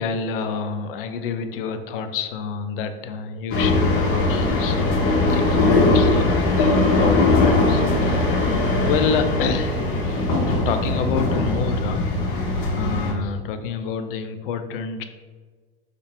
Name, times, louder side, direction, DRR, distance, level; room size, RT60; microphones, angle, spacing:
voice 1, 0.0-8.4 8.8-12.4 12.7-15.0, left 6 dB, 60° left, 9 dB, 0.4 m, -28 dB
sound 1, 3.5-13.1, left 2 dB, 40° left, 0.8 m, -20 dB
2.8 x 2.5 x 4.1 m, 1.5 s
figure-of-eight pair, 80°, 31 cm